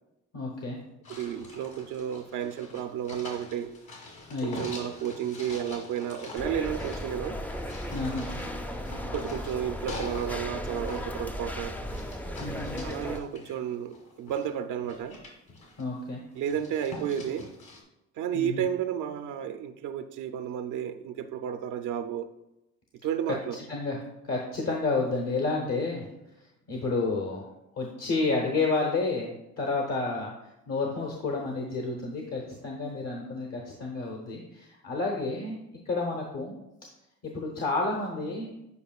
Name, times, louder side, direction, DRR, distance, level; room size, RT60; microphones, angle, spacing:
voice 1, 0.3-0.8 4.3-4.6 7.9-8.4 12.4-12.9 15.8-16.2 18.3-18.6 23.7-26.1 26.4-27.5 27.8-35.6 35.8-36.5 37.2-38.5, left 3 dB, 60° left, 0 dB, 1.0 m, -30 dB
sound 1, 1.0-10.3 10.6-14.5 14.8-16.0 16.4-17.8, left 2 dB, 75° left, 2.0 m, -45 dB
voice 2, 1.1-3.7 4.4-7.4 9.1-11.7 12.8-15.2 16.4-17.5 18.2-22.3 23.0-23.6 32.4-32.5, right 9 dB, 80° right, 8 dB, 0.5 m, -32 dB
sound 2, 6.4-13.2, equal, 5° left, 0.4 m, -36 dB
8.2 x 5.1 x 2.4 m, 0.91 s
cardioid pair, 90°, 30 cm